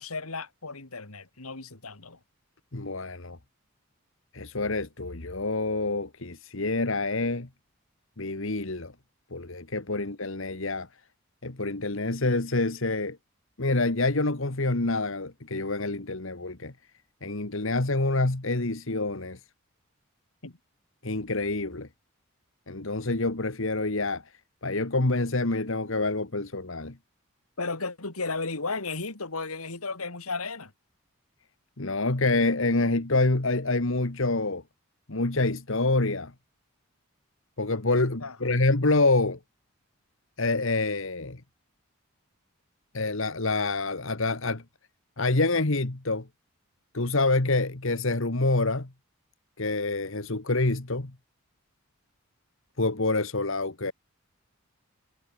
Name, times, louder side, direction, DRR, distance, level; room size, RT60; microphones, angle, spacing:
voice 1, 0.0-2.2 20.4-20.6 27.6-30.7 38.2-38.5, left 3 dB, 85° left, 3.0 m, -34 dB
voice 2, 2.7-3.4 4.3-7.5 8.2-8.9 9.3-10.9 11.4-13.2 13.6-16.7 17.2-19.4 21.0-21.9 22.7-24.2 24.6-27.0 31.8-34.6 35.1-36.3 37.6-39.4 40.4-41.4 42.9-44.6 45.2-46.3 46.9-48.9 49.6-51.1 52.8-53.9, left 2 dB, 65° left, 1.7 m, -27 dB
head